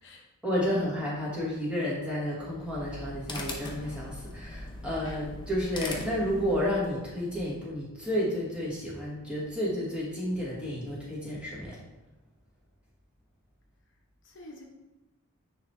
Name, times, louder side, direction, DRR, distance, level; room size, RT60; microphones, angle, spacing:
voice 1, 0.4-11.8, equal, 5° right, -6 dB, 1.5 m, -31 dB
sound 1, 2.5-6.9, left 2 dB, 20° left, 0.6 m, -40 dB
voice 2, 14.2-14.6, left 2 dB, 55° left, 0 dB, 0.9 m, -48 dB
9.4 x 3.3 x 3.2 m, 1.0 s
head